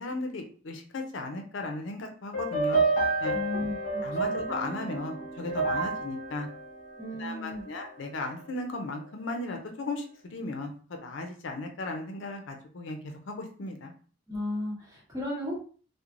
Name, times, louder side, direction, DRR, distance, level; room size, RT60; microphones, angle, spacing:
voice 1, 0.0-2.8 3.2-3.4 4.0-6.5 7.2-13.9, left 2 dB, 75° left, 3 dB, 0.5 m, -36 dB
sound 1, 2.3-7.7, right 3 dB, 45° left, 0.9 m, -30 dB
voice 2, 3.3-4.3 7.0-7.6 14.3-15.6, left 1 dB, 20° right, -5 dB, 1.1 m, -35 dB
3.0 x 2.1 x 2.4 m, 0.42 s
head